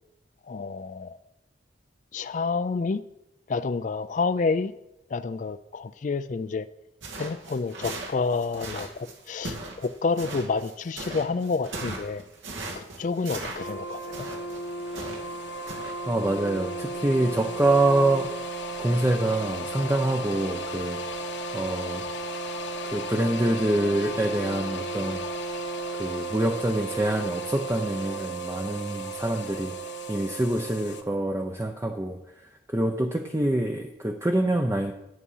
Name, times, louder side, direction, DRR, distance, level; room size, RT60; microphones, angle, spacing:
voice 1, 0.5-1.2 2.1-3.0 3.5-4.7 5.1-6.7 7.2-12.2 12.8-14.3, left 4 dB, 40° left, 13 dB, 0.4 m, -29 dB
sound 1, 7.0-15.4 15.7-15.9, right 2 dB, 85° right, 2.4 m, -38 dB
sound 2, 13.6-31.0, right 2 dB, 65° left, 1.1 m, -34 dB
voice 2, 15.7-18.4 18.8-22.0 22.8-25.2 25.9-34.9, right 1 dB, 15° right, 4 dB, 0.6 m, -26 dB
11.0 x 8.2 x 5.6 m, 0.90 s
head